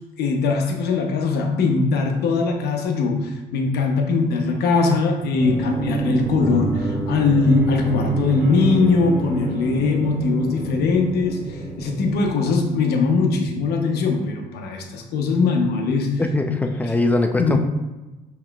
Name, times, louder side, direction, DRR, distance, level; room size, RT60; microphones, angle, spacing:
voice 1, 0.2-16.2 17.4-17.6, left 4 dB, 75° left, 3 dB, 0.8 m, -21 dB
sound 1, 5.3-12.9, right 2 dB, 80° right, 1.3 m, -27 dB
voice 2, 16.2-17.6, left 2 dB, 10° left, 5 dB, 0.4 m, -21 dB
5.7 x 3.1 x 2.3 m, 1.1 s
cardioid pair, 110°, 17 cm